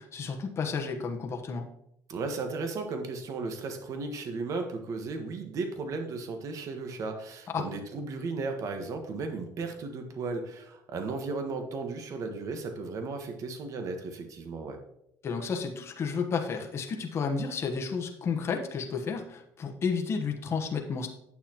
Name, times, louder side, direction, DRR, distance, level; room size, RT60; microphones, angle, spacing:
voice 1, 0.0-1.7 7.5-7.6 15.2-21.1, left 5 dB, 40° left, 4 dB, 1.1 m, -32 dB
voice 2, 2.1-14.8, right 3 dB, 50° right, 6 dB, 1.4 m, -35 dB
9.1 x 6.8 x 3.0 m, 0.77 s
supercardioid pair, 100°, 7 cm